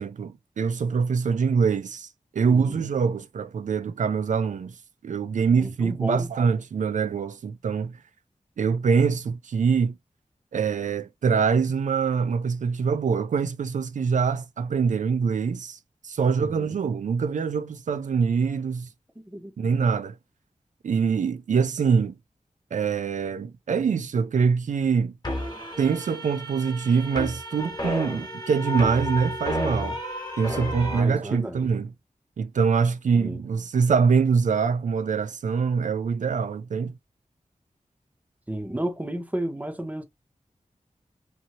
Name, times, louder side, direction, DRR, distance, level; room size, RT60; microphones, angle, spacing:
voice 1, 0.0-4.8 5.0-7.9 8.6-10.0 10.5-15.8 16.0-18.9 19.6-20.2 20.8-22.1 22.7-25.1 25.8-30.0 30.4-31.9 32.4-36.9, right 5 dB, 75° right, 0.4 m, -24 dB
voice 2, 2.5-2.8 5.5-6.3 16.4-16.8 19.2-19.5 30.8-31.7 33.1-33.4 38.5-40.0, right 1 dB, 10° right, 0.6 m, -32 dB
sound 1, 25.2-31.0, left 1 dB, 30° left, 1.1 m, -32 dB
2.8 x 2.7 x 2.8 m
wide cardioid pair, 105°, 13 cm